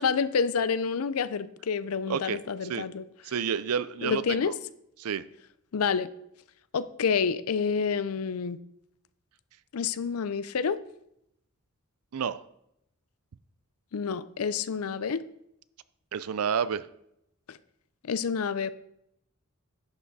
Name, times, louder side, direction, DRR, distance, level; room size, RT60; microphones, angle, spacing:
voice 1, 0.0-3.0 4.0-4.5 5.7-6.1 6.7-8.6 9.7-10.8 13.9-15.2 17.5-17.6 18.0-18.7, left 6 dB, 80° left, 0.5 m, -28 dB
voice 2, 3.2-4.5 5.0-5.3 12.1-12.4 16.1-16.9, right 7 dB, 90° right, 0.5 m, -29 dB
11.0 x 5.9 x 4.1 m
head